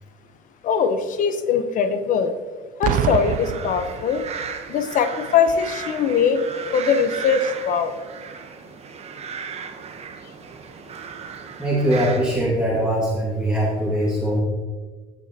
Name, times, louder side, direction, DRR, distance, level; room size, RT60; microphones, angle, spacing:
voice 1, 0.6-2.3 2.8-4.2 4.7-6.4 6.7-7.9, left 6 dB, 50° left, 9 dB, 1.0 m, -21 dB
Boom, 2.8-4.6 5.5-5.7, right 9 dB, 55° right, 0.5 m, -26 dB
sound 1, 3.1-12.4, right 6 dB, 40° right, 1.1 m, -36 dB
voice 2, 11.6-14.4, right 1 dB, 5° right, -6 dB, 2.2 m, -21 dB
15.0 x 6.2 x 2.9 m, 1.4 s
supercardioid pair, 90°, 17 cm